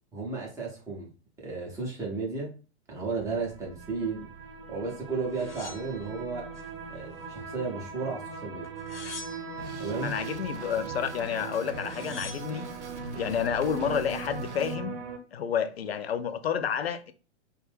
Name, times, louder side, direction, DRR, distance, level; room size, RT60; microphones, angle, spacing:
voice 1, 0.1-1.1 1.4-2.5 2.9-4.3 4.7-6.5 6.9-8.7 9.6-10.1, right 4 dB, 10° right, 0.5 m, -34 dB
sound 1, 3.2-15.2, right 5 dB, 50° right, 0.7 m, -40 dB
sound 2, 5.3-6.7 7.1-7.9 8.6-9.7 11.3-11.4 11.6-12.6 13.3-13.8, left 4 dB, 80° left, 0.9 m, -45 dB
Drum kit, 9.6-14.7, right 1 dB, 85° right, 0.6 m, -43 dB
voice 2, 10.0-12.7 13.1-15.0 15.3-17.1, left 8 dB, 60° left, 0.4 m, -30 dB
2.5 x 2.2 x 3.3 m
figure-of-eight pair, 110°, 34 cm